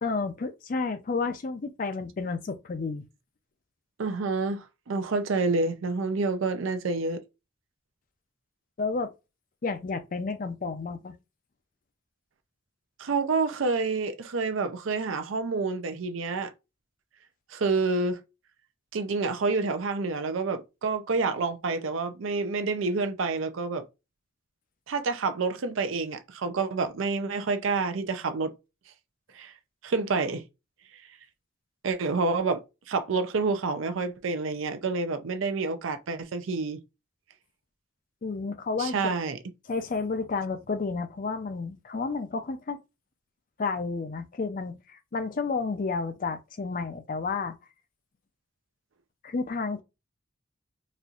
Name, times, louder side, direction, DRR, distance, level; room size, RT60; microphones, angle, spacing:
voice 1, 0.0-3.0 8.8-9.1 9.6-11.2 38.2-39.1 39.7-42.8 43.6-47.6 49.2-49.8, left 4 dB, 45° left, 0.4 m, -31 dB
voice 2, 4.0-7.2 13.0-16.5 17.5-18.2 18.9-23.9 24.9-28.5 29.3-29.5 29.8-30.4 31.8-36.8 38.8-39.4, right 4 dB, 80° right, 0.5 m, -28 dB
4.2 x 2.5 x 2.4 m
head